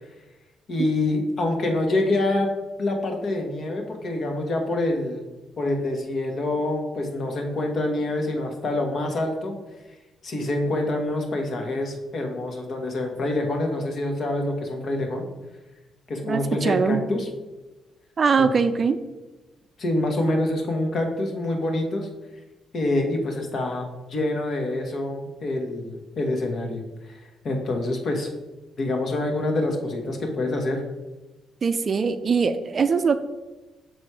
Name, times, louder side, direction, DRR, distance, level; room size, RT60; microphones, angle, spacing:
voice 1, 0.7-2.5 2.8-5.3 5.6-9.6 10.2-15.3 16.1-17.3 18.4-18.5 19.8-22.1 22.7-28.3 28.8-30.9, left 2 dB, 55° left, 3 dB, 1.4 m, -26 dB
voice 2, 16.2-17.0 18.2-19.0 31.6-33.2, right 5 dB, 45° right, 10 dB, 0.4 m, -22 dB
6.2 x 4.2 x 4.8 m, 1.1 s
cardioid pair, 90°, 0 cm